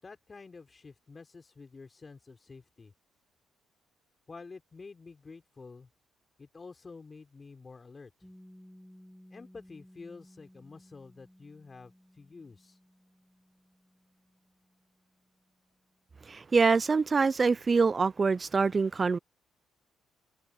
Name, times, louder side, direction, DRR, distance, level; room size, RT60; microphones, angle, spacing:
voice 1, 0.0-2.9 4.3-5.9 6.4-8.3 9.3-12.8, left 4 dB, 35° left, 4.5 m, -49 dB
Piano, 8.2-15.5, equal, 5° left, 2.5 m, -58 dB
voice 2, 16.3-19.2, right 4 dB, 35° right, 0.3 m, -25 dB
supercardioid pair, 65°, 0 cm